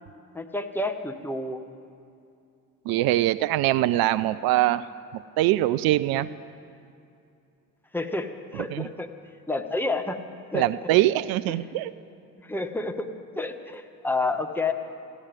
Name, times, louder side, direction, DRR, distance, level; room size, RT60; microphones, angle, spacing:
voice 1, 0.3-1.6 7.9-9.1 9.5-10.2 10.5-10.7 11.5-11.6 12.4-13.1 13.4-14.7, left 2 dB, 5° left, 5 dB, 1.1 m, -29 dB
voice 2, 2.9-4.8 5.4-6.3 8.7-8.9 10.5-11.9, right 15 dB, 50° right, 15 dB, 0.5 m, -23 dB
14.5 x 8.7 x 9.8 m, 2.6 s
figure-of-eight pair, 45°, 48 cm